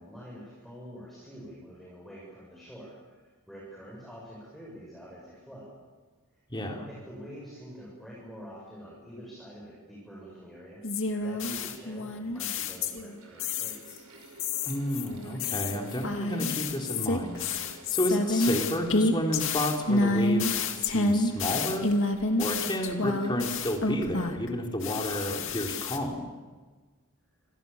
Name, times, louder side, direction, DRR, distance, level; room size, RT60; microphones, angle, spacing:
voice 1, 0.0-5.7 6.5-10.8 11.2-14.0, equal, ahead, -5 dB, 7.0 m, -46 dB
voice 2, 6.5-6.8 14.7-21.9 22.4-26.3, left 1 dB, 20° left, 1 dB, 3.7 m, -31 dB
sound 1, 10.8-13.1 13.4-14.0 14.4-24.5 24.8-26.0, left 2 dB, 60° left, 2.5 m, -29 dB
Mechanical fan, 12.3-25.0, right 2 dB, 85° right, 6.1 m, -52 dB
28.0 x 27.0 x 7.1 m, 1.3 s
head